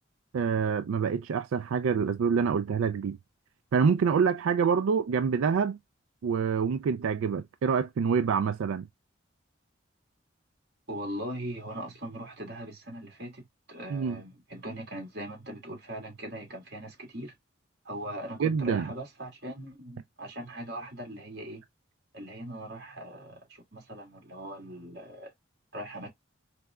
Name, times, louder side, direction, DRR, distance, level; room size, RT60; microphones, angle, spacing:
voice 1, 0.3-3.2 3.7-5.8 6.2-8.9 13.9-14.2 18.4-18.9, right 6 dB, 90° right, 0.3 m, -26 dB
voice 2, 10.9-17.3 17.9-21.6 22.1-25.3 25.7-26.1, right 1 dB, 50° right, 1.9 m, -40 dB
4.7 x 3.2 x 2.3 m
head